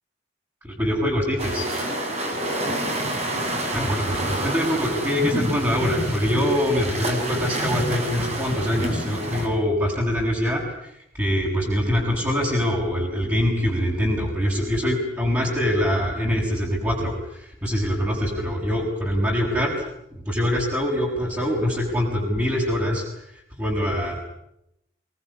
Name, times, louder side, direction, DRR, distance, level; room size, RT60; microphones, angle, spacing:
voice 1, 0.6-1.7 3.7-24.2, equal, 15° right, -4 dB, 6.6 m, -24 dB
sound 1, 1.4-9.5, right 1 dB, 35° right, 7.7 m, -28 dB
28.5 x 20.0 x 9.9 m, 0.82 s
head